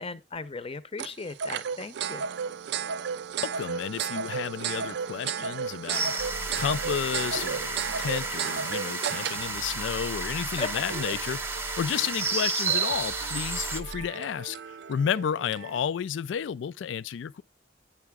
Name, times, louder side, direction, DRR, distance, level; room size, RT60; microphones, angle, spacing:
voice 1, 0.0-2.2 10.6-10.7, left 3 dB, 30° left, 0.7 m, -36 dB
sound 1, 1.0-15.8, right 7 dB, 65° right, 0.4 m, -35 dB
voice 2, 3.4-6.1 6.5-17.4, left 8 dB, 75° left, 0.3 m, -32 dB
sound 2, 5.9-13.8, right 4 dB, 15° right, 0.9 m, -32 dB
sound 3, 6.2-14.1, right 2 dB, 85° right, 0.7 m, -42 dB
9.1 x 5.8 x 3.5 m
head